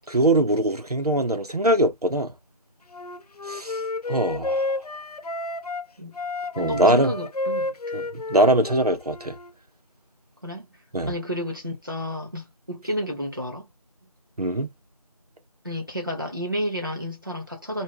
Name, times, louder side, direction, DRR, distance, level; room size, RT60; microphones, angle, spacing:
voice 1, 0.1-2.3 3.5-3.8 4.1-4.7 6.6-7.1 7.9-9.4 10.9-11.1 14.4-14.7, right 1 dB, 85° right, 1.0 m, -22 dB
Wind instrument woodwind instrument, 2.9-5.8 6.1-9.5, left 2 dB, 80° left, 0.5 m, -31 dB
voice 2, 6.6-7.8 10.4-10.7 11.1-13.7 15.6-17.8, equal, 35° right, 1.0 m, -31 dB
2.6 x 2.1 x 3.2 m
figure-of-eight pair, 180°, 19 cm